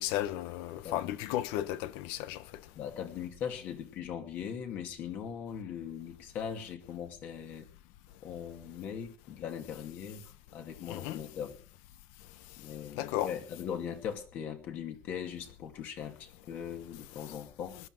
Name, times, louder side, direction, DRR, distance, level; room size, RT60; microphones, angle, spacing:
voice 1, 0.0-2.4 10.9-11.2 13.0-13.3, left 13 dB, 85° left, 1.1 m, -34 dB
voice 2, 0.8-1.2 2.7-7.7 8.2-11.6 12.6-17.8, left 8 dB, 50° left, 2.4 m, -40 dB
20.0 x 11.0 x 4.7 m
cardioid pair, 165°, 4 cm